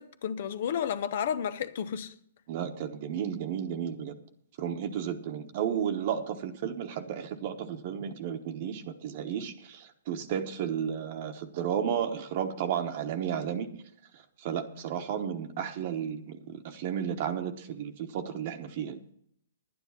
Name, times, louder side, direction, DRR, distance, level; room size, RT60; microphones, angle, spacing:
voice 1, 0.0-2.1, left 8 dB, 55° left, 0.9 m, -32 dB
voice 2, 2.5-4.1 4.6-13.8 14.4-19.0, right 8 dB, 45° right, 1.1 m, -33 dB
11.0 x 9.6 x 5.6 m
hypercardioid pair, 145°, 0 cm